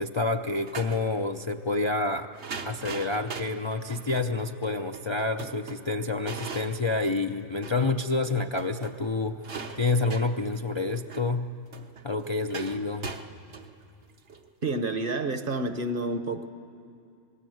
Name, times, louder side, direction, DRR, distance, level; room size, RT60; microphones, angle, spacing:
voice 1, 0.0-2.3 2.6-11.5 12.0-13.1, left 3 dB, 35° left, 4 dB, 0.5 m, -28 dB
sound 1, 0.5-1.0 2.3-7.9 8.3-8.4 8.5-15.0, right 5 dB, 70° right, 1.4 m, -41 dB
voice 2, 14.6-16.5, right 2 dB, 50° right, 9 dB, 1.2 m, -29 dB
26.5 x 19.5 x 7.8 m, 2.6 s
omnidirectional pair, 1.2 m